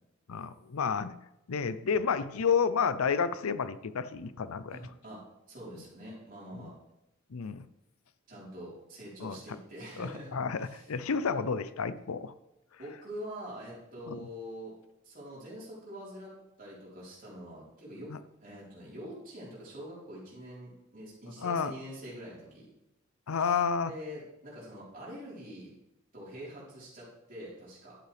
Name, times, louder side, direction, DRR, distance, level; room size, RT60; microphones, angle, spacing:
voice 1, 0.3-1.1 1.5-4.8 6.5-6.7 7.3-7.6 9.2-9.4 10.0-12.3 14.1-14.3 18.1-18.2 21.4-21.7 23.3-23.9, left 6 dB, 90° left, 13 dB, 0.6 m, -30 dB
voice 2, 4.7-6.7 8.3-10.9 11.2-11.4 12.8-14.7 15.0-18.1 18.4-22.7 23.3-25.7 26.1-28.0, equal, 40° right, -6 dB, 4.2 m, -45 dB
11.5 x 8.2 x 3.4 m, 0.88 s
head